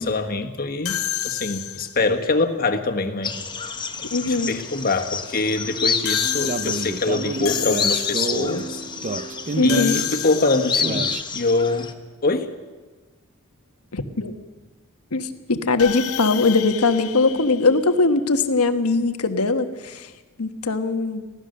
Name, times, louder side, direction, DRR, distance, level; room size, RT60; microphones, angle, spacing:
voice 1, 0.0-3.3 4.0-8.8 9.6-11.9 12.2-12.5, left 3 dB, 40° left, 5 dB, 1.5 m, -24 dB
sound 1, 0.8-2.1 6.0-8.6 9.7-11.0 15.8-18.3, left 12 dB, 70° left, 0.7 m, -30 dB
sound 2, 3.2-11.9, left 6 dB, 20° left, 1.1 m, -29 dB
voice 2, 4.1-4.5 9.5-10.0 13.9-14.3 15.1-20.1 20.4-21.2, left 3 dB, 90° left, 8 dB, 1.3 m, -21 dB
sound 3, 6.2-11.2, right 3 dB, 35° right, 0.5 m, -30 dB
24.5 x 16.5 x 6.6 m, 1.3 s
head